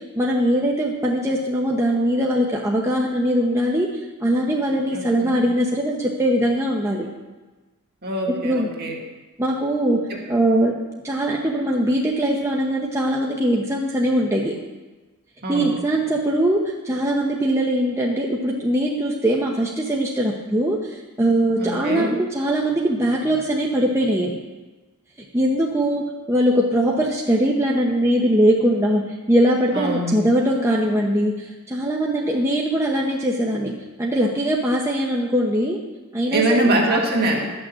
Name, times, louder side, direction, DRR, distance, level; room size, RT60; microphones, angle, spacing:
voice 1, 0.0-3.9 4.2-7.1 8.4-8.7 9.4-10.0 10.3-10.7 11.0-14.5 15.5-24.3 25.3-33.7 34.0-35.8 36.1-37.0, right 1 dB, 15° right, -2 dB, 1.0 m, -21 dB
voice 2, 4.9-5.3 8.0-9.0 10.1-10.4 15.4-15.7 21.6-22.2 29.7-30.3 36.3-37.4, right 1 dB, 45° right, 0 dB, 2.1 m, -23 dB
12.0 x 6.3 x 7.6 m, 1.2 s
head